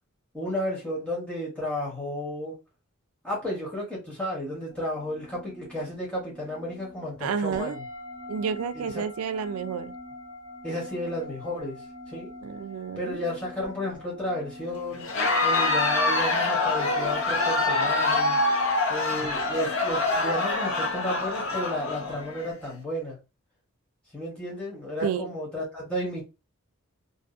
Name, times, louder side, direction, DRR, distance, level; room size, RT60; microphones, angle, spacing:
voice 1, 0.3-2.6 3.2-7.9 8.7-9.0 10.6-12.3 13.0-15.1 15.4-18.4 18.9-23.2 24.1-26.2, left 1 dB, 5° left, 1.0 m, -33 dB
sound 1, 4.7-22.7, left 1 dB, 15° right, 0.8 m, -45 dB
voice 2, 7.2-7.8 8.3-9.9 12.4-13.2 25.0-25.3, right 7 dB, 75° right, 0.3 m, -30 dB
Crowd, 15.0-22.5, left 2 dB, 60° left, 0.7 m, -25 dB
2.7 x 2.4 x 2.4 m
head